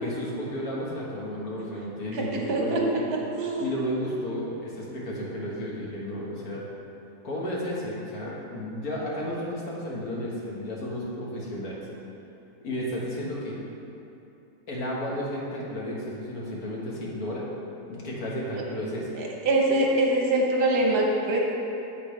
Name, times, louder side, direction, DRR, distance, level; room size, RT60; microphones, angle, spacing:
voice 1, 0.0-3.1 3.6-6.7 7.2-11.8 12.6-13.6 14.7-17.5 17.9-19.1, equal, 65° left, -5 dB, 1.9 m, -33 dB
voice 2, 2.1-2.8 3.4-3.6 18.6-18.7 19.2-21.4, right 2 dB, 75° right, -1 dB, 1.6 m, -24 dB
8.6 x 7.8 x 3.3 m, 2.9 s
omnidirectional pair, 1.7 m